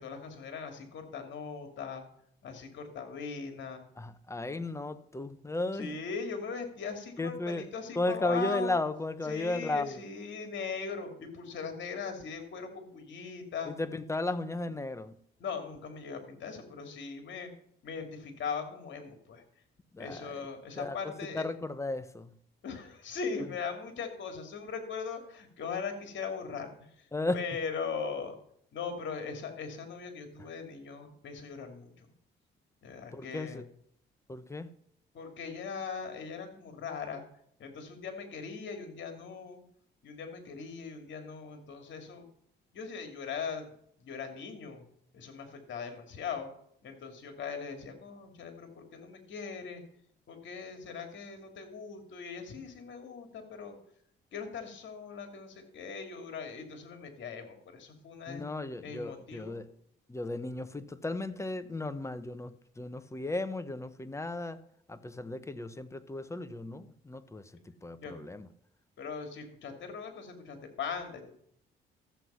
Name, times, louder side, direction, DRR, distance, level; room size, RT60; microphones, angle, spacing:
voice 1, 0.0-2.0 2.4-3.8 5.8-8.7 9.3-13.7 15.4-17.5 17.8-19.4 20.0-21.5 22.6-27.1 27.3-28.3 28.7-32.1 32.8-33.6 35.1-37.2 37.6-39.6 40.0-42.2 42.7-43.7 44.0-44.8 45.1-46.5 46.8-49.8 50.3-53.8 54.3-58.4 58.8-59.6 68.0-68.1 69.0-71.3, left 5 dB, 65° left, 2.7 m, -40 dB
voice 2, 4.0-5.9 7.2-7.7 7.9-10.0 13.6-15.2 19.9-20.5 20.8-22.4 27.1-27.4 33.1-33.6 34.3-34.7 58.3-59.7 60.1-64.6 64.9-68.5, left 2 dB, 15° left, 1.0 m, -35 dB
13.5 x 7.9 x 5.6 m
cardioid pair, 90°, 20 cm